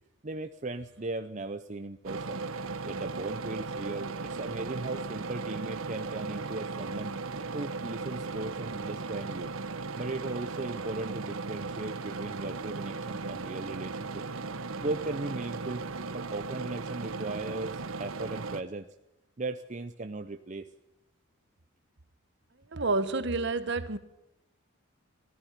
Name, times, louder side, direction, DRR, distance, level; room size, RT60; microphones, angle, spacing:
voice 1, 0.2-2.4 2.8-7.1 7.5-9.5 10.0-14.2 14.8-15.8 16.1-18.9 19.4-20.7, right 2 dB, 35° right, 0.7 m, -37 dB
sound 1, 2.1-18.6, right 3 dB, 80° right, 1.0 m, -37 dB
voice 2, 22.7-24.0, right 3 dB, 55° right, 1.2 m, -29 dB
19.0 x 14.0 x 9.9 m
head